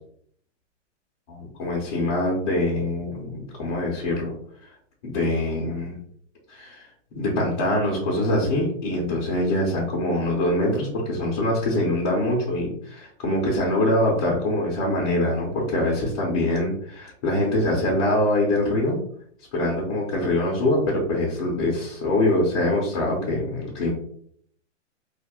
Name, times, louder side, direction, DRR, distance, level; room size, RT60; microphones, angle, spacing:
voice 1, 1.4-4.3 5.0-6.0 6.5-6.9 7.1-19.0 19.5-23.9, left 1 dB, 25° left, -5 dB, 0.4 m, -24 dB
2.3 x 2.1 x 2.8 m, 0.63 s
hypercardioid pair, 145°, 36 cm